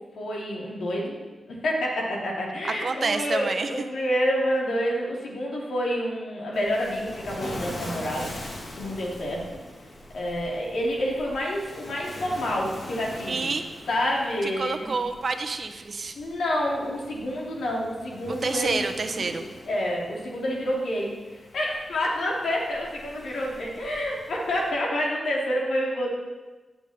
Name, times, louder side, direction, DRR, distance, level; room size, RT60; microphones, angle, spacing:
voice 1, 0.2-1.2 1.5-8.3 8.8-9.6 10.1-13.4 13.9-14.9 16.1-21.1 21.5-26.1, equal, 85° left, -3 dB, 2.9 m, -28 dB
voice 2, 2.8-3.7 13.3-13.7 14.4-16.2 18.3-19.4, right 4 dB, 60° right, 7 dB, 1.0 m, -28 dB
Waves surf, 6.5-24.7, left 1 dB, 55° left, 3.1 m, -42 dB
17.0 x 7.1 x 4.3 m, 1.2 s
cardioid pair, 55°, 0 cm